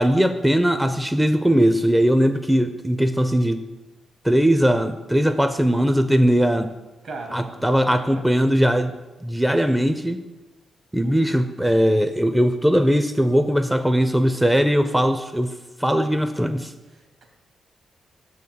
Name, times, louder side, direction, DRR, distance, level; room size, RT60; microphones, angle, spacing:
voice 1, 0.0-3.6 4.2-6.7 7.3-8.9 9.2-10.2 10.9-15.5 15.8-16.7, equal, 5° right, 9 dB, 0.4 m, -19 dB
voice 2, 7.0-8.2 11.0-11.3 16.8-17.3, right 3 dB, 70° right, 3 dB, 1.6 m, -39 dB
6.4 x 3.6 x 6.2 m, 1.1 s
supercardioid pair, 60°, 0 cm